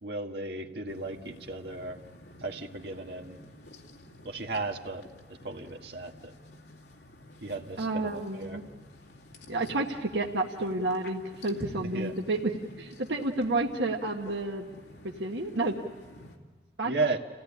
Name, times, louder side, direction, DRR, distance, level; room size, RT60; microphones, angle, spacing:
voice 1, 0.0-2.0 2.4-3.4 4.2-5.1 5.4-6.3 7.4-8.6 11.9-12.1 16.8-17.2, right 3 dB, 70° right, 3 dB, 1.8 m, -34 dB
sound 1, 0.9-16.4, left 1 dB, 75° left, 2.5 m, -50 dB
voice 2, 7.8-8.6 9.5-12.5 12.8-14.6 15.0-15.7 16.8-16.9, right 2 dB, 85° right, 1 dB, 1.3 m, -30 dB
29.5 x 16.5 x 9.9 m, 1.4 s
head